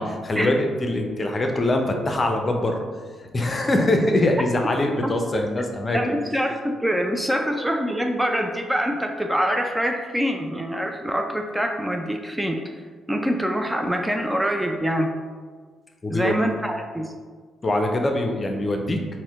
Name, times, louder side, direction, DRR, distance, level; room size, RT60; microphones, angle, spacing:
voice 1, 0.0-2.8 3.3-6.2 7.4-7.5 16.0-16.4 17.6-19.0, left 1 dB, 35° left, 3 dB, 0.6 m, -23 dB
voice 2, 5.9-12.6 13.1-15.1 16.1-17.1, equal, 10° right, 3 dB, 0.4 m, -25 dB
4.2 x 2.1 x 3.5 m, 1.5 s
hypercardioid pair, 50°, 0 cm